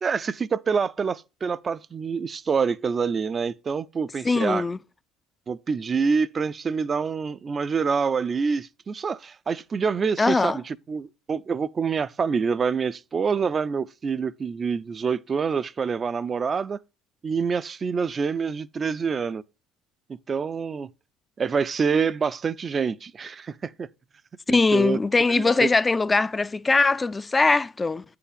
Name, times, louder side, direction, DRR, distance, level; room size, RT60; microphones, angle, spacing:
voice 1, 0.0-4.7 5.5-16.8 17.2-19.4 20.3-20.9 21.4-23.9 24.5-25.0 25.3-25.7, right 5 dB, 35° right, 0.5 m, -26 dB
voice 2, 4.2-4.8 10.2-10.6 24.5-28.0, left 3 dB, 20° left, 0.4 m, -21 dB
8.6 x 4.8 x 5.1 m
hypercardioid pair, 65°, 0 cm